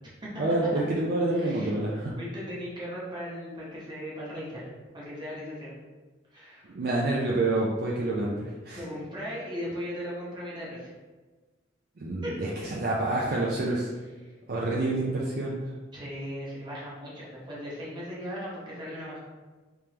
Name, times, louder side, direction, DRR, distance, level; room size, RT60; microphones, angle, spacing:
voice 1, 0.4-2.1 6.7-8.8 12.0-13.9 14.5-15.5, right 2 dB, 50° right, -4 dB, 0.4 m, -27 dB
voice 2, 1.3-5.7 6.3-6.7 8.7-10.9 12.2-12.4 14.2-14.3 15.9-19.2, equal, 25° right, -7 dB, 0.9 m, -38 dB
3.4 x 3.3 x 2.9 m, 1.3 s
head